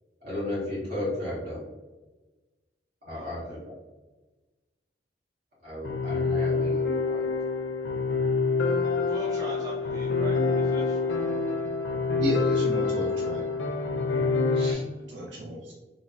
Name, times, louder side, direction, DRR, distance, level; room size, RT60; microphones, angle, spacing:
voice 1, 0.2-1.6 3.0-3.7 5.6-7.2, left 1 dB, 55° right, -8 dB, 1.5 m, -34 dB
voice 2, 3.1-3.6 9.1-11.0, equal, 20° right, -5 dB, 0.5 m, -40 dB
sound 1, 5.8-14.7, left 4 dB, 85° left, 0.5 m, -26 dB
voice 3, 12.2-13.4 14.5-14.8 15.1-15.7, equal, 85° right, -3 dB, 0.5 m, -33 dB
3.2 x 2.1 x 2.5 m, 1.2 s
head